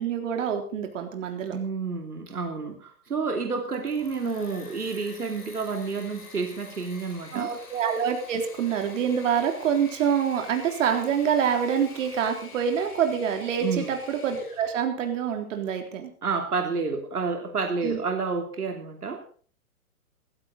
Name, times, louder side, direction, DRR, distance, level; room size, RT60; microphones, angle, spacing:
voice 1, 0.0-1.6 7.3-16.1 17.8-18.0, right 8 dB, 55° right, 4 dB, 3.8 m, -26 dB
voice 2, 1.5-7.5 13.6-13.9 16.2-19.2, right 4 dB, 85° right, 4 dB, 3.0 m, -29 dB
Engine / Mechanisms, 3.6-14.8, left 4 dB, 85° left, 5.1 m, -47 dB
16.0 x 15.5 x 4.1 m, 0.42 s
hypercardioid pair, 130°, 44 cm